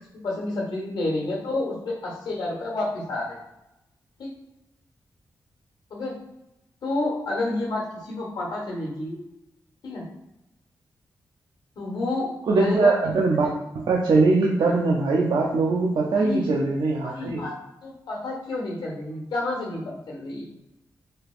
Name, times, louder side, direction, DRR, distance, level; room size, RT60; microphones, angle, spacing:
voice 1, 0.2-3.4 4.2-4.3 5.9-6.1 6.8-9.2 9.8-10.0 11.8-12.3 12.6-12.9 13.4-13.5 16.1-16.5 17.0-17.5 17.8-20.4, left 2 dB, 80° left, -3 dB, 1.1 m, -29 dB
voice 2, 12.5-13.5 13.7-17.4, right 3 dB, 75° right, -2 dB, 0.5 m, -21 dB
3.2 x 2.9 x 2.4 m, 0.91 s
cardioid pair, 50°, 8 cm